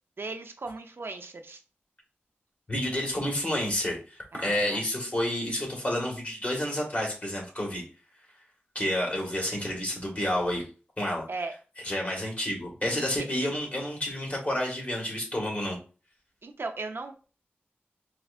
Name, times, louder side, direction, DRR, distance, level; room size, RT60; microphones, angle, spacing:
voice 1, 0.2-1.6 4.3-4.8 11.3-11.5 16.4-17.1, right 3 dB, 70° right, 6 dB, 0.6 m, -37 dB
voice 2, 2.7-7.8 8.7-10.6 11.0-11.2 11.8-15.8, left 1 dB, 35° left, -1 dB, 1.7 m, -30 dB
4.4 x 3.2 x 2.4 m, 0.35 s
wide cardioid pair, 85°, 4 cm